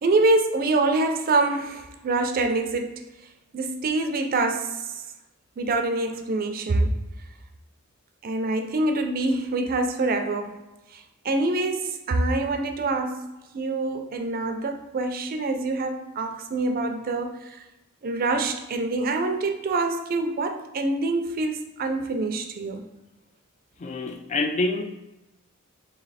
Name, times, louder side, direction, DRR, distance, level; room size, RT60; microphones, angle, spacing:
voice 1, 0.0-3.0 3.5-4.9 5.6-6.9 8.2-10.6 10.9-13.3 13.5-17.6 18.0-22.8, right 2 dB, 45° right, 6 dB, 0.4 m, -25 dB
voice 2, 23.8-24.8, left 2 dB, 35° left, 6 dB, 0.3 m, -26 dB
3.1 x 2.9 x 4.0 m, 1.0 s
head